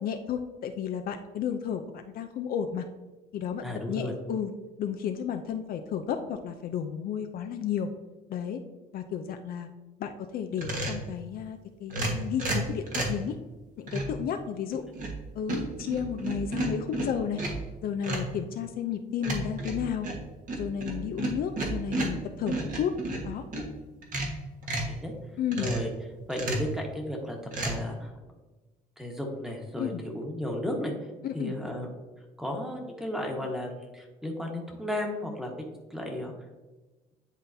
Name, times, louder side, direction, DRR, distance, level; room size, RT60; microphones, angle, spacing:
voice 1, 0.0-2.9 3.3-4.5 4.8-7.9 8.3-8.6 8.9-9.7 10.0-13.3 13.8-14.8 15.3-17.4 17.8-20.1 20.6-22.9 23.2-23.4 25.4-25.7 29.8-30.0 31.2-31.5, left 8 dB, 60° left, 7 dB, 0.5 m, -32 dB
voice 2, 3.6-4.1 24.8-25.1 25.6-25.9 26.3-27.4 27.6-28.1 29.0-30.9 31.3-31.9 32.4-35.5 35.9-36.3, left 1 dB, 5° right, 1 dB, 1.4 m, -34 dB
sound 1, 10.6-11.1 11.9-13.2 13.9-14.2 14.7-15.2 15.5-17.7 18.0-18.3 19.2-23.7 24.0-25.0 25.5-25.9 26.3-26.7 27.5-27.7, right 2 dB, 50° right, 1.5 m, -32 dB
10.0 x 3.9 x 2.7 m, 1.2 s
cardioid pair, 110°, 17 cm